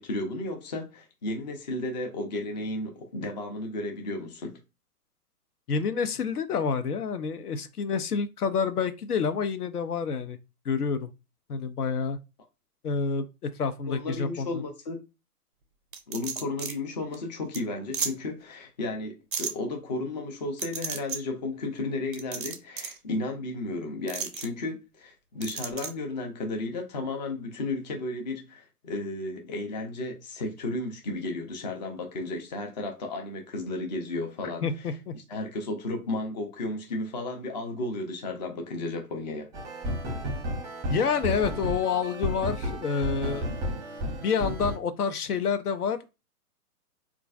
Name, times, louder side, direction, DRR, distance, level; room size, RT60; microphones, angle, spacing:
voice 1, 0.0-4.6 13.9-15.0 16.1-39.5, left 2 dB, 30° left, 0.5 m, -33 dB
voice 2, 5.7-10.4 10.7-11.1 11.5-12.2 12.8-14.6 34.6-35.1 40.9-43.5 44.2-46.1, left 6 dB, 75° left, 0.6 m, -28 dB
sound 1, 15.9-16.7 17.1-17.2 17.5-17.6 17.9-18.1 19.3-19.5 20.6-21.2 22.1-23.0 24.1-24.5 25.4-25.9, right 6 dB, 35° right, 0.4 m, -33 dB
sound 2, 39.5-44.8, equal, 5° right, 0.7 m, -32 dB
3.8 x 2.4 x 2.3 m
figure-of-eight pair, 120°, 46 cm